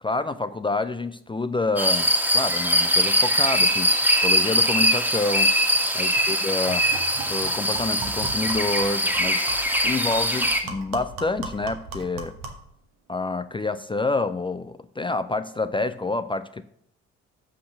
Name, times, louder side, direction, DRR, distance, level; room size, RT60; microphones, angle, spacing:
voice 1, 0.0-3.9 4.2-5.5 5.9-6.8 7.3-9.5 9.8-12.3 13.1-16.6, left 3 dB, 15° left, 12 dB, 0.5 m, -28 dB
sound 1, 1.8-10.6, equal, 5° right, 1.7 m, -22 dB
sound 2, 5.7-5.8 6.2-6.3 6.7-12.7, right 4 dB, 65° right, 1.5 m, -38 dB
6.6 x 5.6 x 6.6 m, 0.67 s
hypercardioid pair, 50°, 36 cm